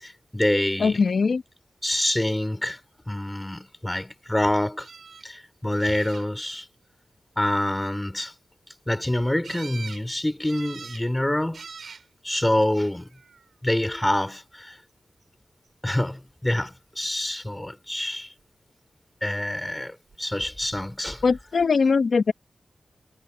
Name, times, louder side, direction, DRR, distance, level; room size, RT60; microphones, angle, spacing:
voice 1, 0.0-1.0 1.8-2.8 3.1-4.9 5.2-6.6 7.4-8.3 8.9-11.6 12.2-13.1 13.6-14.8 15.8-18.3 19.2-21.2, left 1 dB, 15° left, 4.1 m, -26 dB
voice 2, 0.8-1.4 21.2-22.3, left 4 dB, 70° left, 1.0 m, -21 dB
sound 1, 4.8-5.2 5.8-6.5 9.4-10.0 10.4-11.0 11.5-12.0 12.9-13.4 19.6-19.8 20.1-20.2, right 5 dB, 75° right, 6.1 m, -42 dB
cardioid pair, 50°, 0 cm